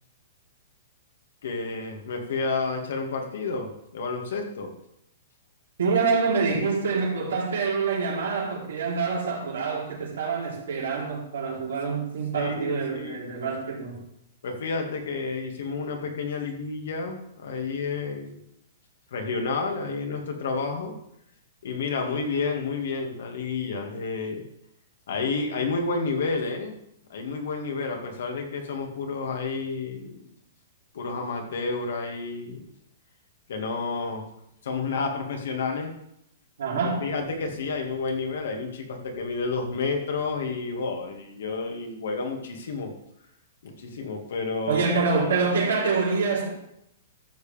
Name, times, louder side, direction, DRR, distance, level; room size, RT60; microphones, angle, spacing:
voice 1, 1.4-4.7 12.3-13.4 14.4-18.4 19.1-21.0 21.6-24.4 25.1-26.7 27.1-30.3 30.9-32.6 33.5-34.3 34.6-35.9 37.0-42.9 43.6-44.8, left 4 dB, 75° left, 2 dB, 2.2 m, -30 dB
voice 2, 5.8-14.1 36.6-37.0 44.7-46.5, right 4 dB, 85° right, -3 dB, 3.6 m, -26 dB
13.0 x 7.0 x 3.5 m, 0.77 s
hypercardioid pair, 140°, 0 cm